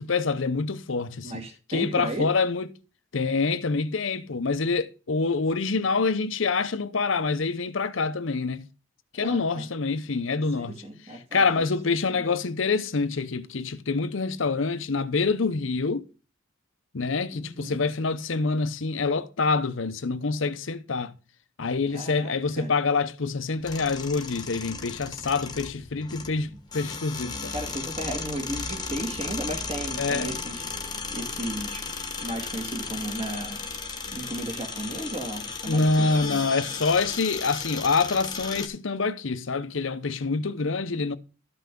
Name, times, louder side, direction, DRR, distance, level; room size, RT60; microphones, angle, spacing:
voice 1, 0.0-1.4 1.7-2.7 3.1-8.6 9.1-10.8 11.3-16.0 16.9-21.2 21.6-27.5 30.0-30.4 35.6-41.2, left 4 dB, 75° left, 0.8 m, -26 dB
voice 2, 1.2-2.3 9.2-9.7 10.5-11.6 12.1-12.2 17.3-17.8 21.9-22.7 27.5-30.7 31.1-31.9 32.2-36.4, right 1 dB, 30° right, 2.0 m, -35 dB
sound 1, 23.6-38.7, left 4 dB, 20° left, 1.2 m, -35 dB
12.5 x 5.7 x 3.8 m
head